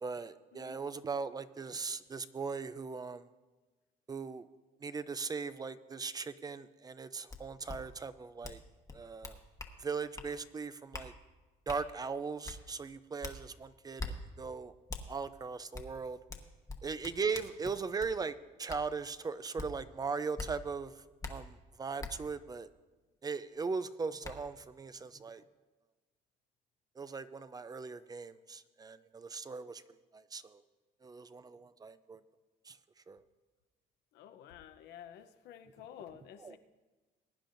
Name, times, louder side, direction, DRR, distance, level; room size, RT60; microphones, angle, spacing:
voice 1, 0.0-3.3 4.1-4.5 4.8-8.6 8.9-9.4 9.8-11.1 11.7-14.7 15.1-16.2 16.8-22.7 23.2-25.4 27.0-29.8 30.1-30.6 31.0-32.2 32.7-32.8 33.1-33.2 36.4-36.6, right 5 dB, 20° right, 14 dB, 0.4 m, -39 dB
sound 1, 7.3-7.4 7.7-7.8 8.4-8.6 8.9-9.7 10.2-10.3 10.9-11.1 11.7-11.8 12.4-12.6 13.2-13.4 14.0-14.1 14.9-15.0 15.7-15.9 16.3-18.1 18.7-18.8 19.6-19.7 20.4-20.5 21.2-21.3 22.0-22.1 23.6-23.7 24.2-24.3, left 3 dB, 20° left, 1.1 m, -42 dB
voice 2, 34.2-36.6, left 9 dB, 80° left, 9 dB, 0.8 m, -51 dB
21.0 x 10.0 x 2.6 m, 1.2 s
cardioid pair, 110°, 17 cm